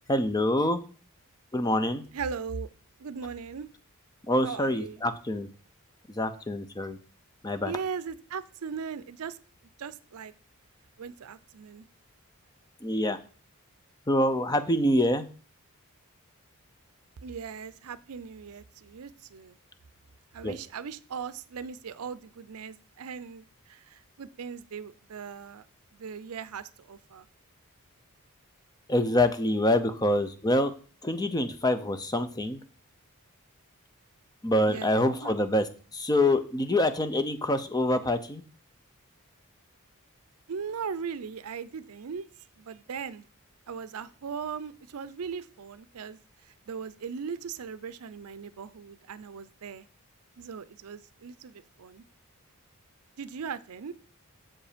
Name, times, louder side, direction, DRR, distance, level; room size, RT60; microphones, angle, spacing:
voice 1, 0.1-0.8 1.5-2.0 4.3-5.5 6.1-7.0 7.4-7.7 12.8-13.2 14.1-15.2 20.4-20.6 28.9-30.7 31.0-32.6 34.4-35.7 35.9-38.4, left 1 dB, 15° left, 9 dB, 0.6 m, -25 dB
voice 2, 2.1-2.7 3.0-3.7 4.4-5.0 7.6-9.4 9.8-10.3 11.0-11.9 17.2-19.6 20.3-25.7 25.9-27.3 34.7-35.4 40.5-42.2 42.6-43.3 43.7-49.9 50.4-52.0 53.2-53.9, right 6 dB, 75° right, 16 dB, 0.5 m, -39 dB
7.3 x 5.1 x 5.0 m, 0.39 s
head